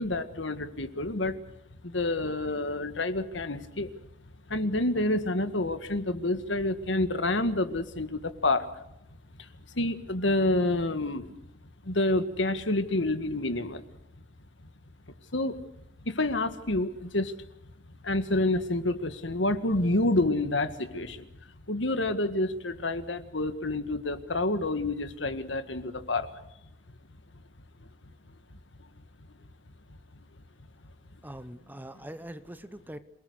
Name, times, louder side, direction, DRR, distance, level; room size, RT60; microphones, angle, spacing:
voice 1, 0.0-1.4 1.8-3.9 4.5-8.8 9.4-9.5 9.7-11.4 11.8-13.8 15.3-15.6 16.1-17.3 18.0-21.3 21.7-26.4, left 2 dB, 75° left, 10 dB, 1.8 m, -28 dB
voice 2, 31.2-33.0, right 1 dB, 10° right, 12 dB, 1.0 m, -42 dB
27.5 x 19.0 x 6.5 m, 0.83 s
head